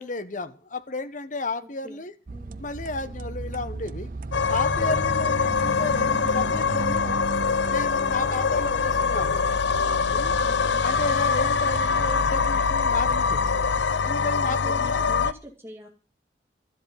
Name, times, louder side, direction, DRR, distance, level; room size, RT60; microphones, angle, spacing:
voice 1, 0.0-2.1 2.6-4.1 4.5-7.2 7.7-9.5 10.1-10.3 10.8-13.6 14.0-15.0, left 3 dB, 45° left, 1.2 m, -32 dB
voice 2, 1.6-2.0 2.3-2.7 4.7-5.1 10.4-10.9 14.5-15.9, equal, 15° right, 2.4 m, -44 dB
sound 1, 2.3-13.8, right 3 dB, 50° right, 0.6 m, -36 dB
sound 2, 4.3-15.3, left 5 dB, 90° left, 0.7 m, -24 dB
12.5 x 7.7 x 9.5 m
head